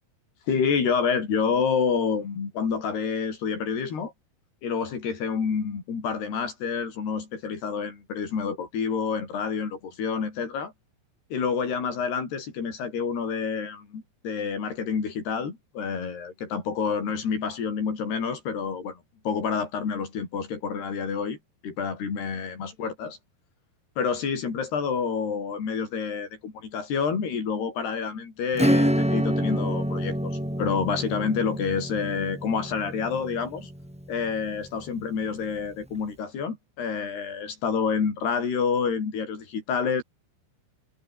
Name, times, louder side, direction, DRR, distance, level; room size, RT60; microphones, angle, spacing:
voice 1, 0.5-4.1 4.6-10.7 11.3-19.0 19.3-21.4 21.6-23.2 24.0-33.7 34.1-40.0, left 6 dB, 50° left, 7.2 m, -28 dB
Acoustic guitar / Strum, 28.5-34.8, equal, 5° right, 0.7 m, -27 dB
omnidirectional pair, 5.9 m